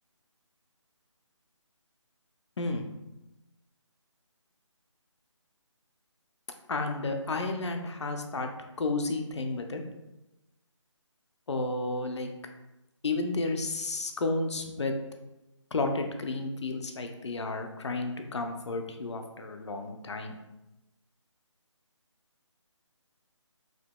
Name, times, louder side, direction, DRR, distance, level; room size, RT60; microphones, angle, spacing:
voice 1, 6.7-8.5 8.8-9.8 11.5-12.3 13.0-15.0 15.7-20.4, left 3 dB, 60° left, 5 dB, 0.6 m, -32 dB
5.0 x 2.7 x 2.2 m, 0.98 s
figure-of-eight pair, 170°, 16 cm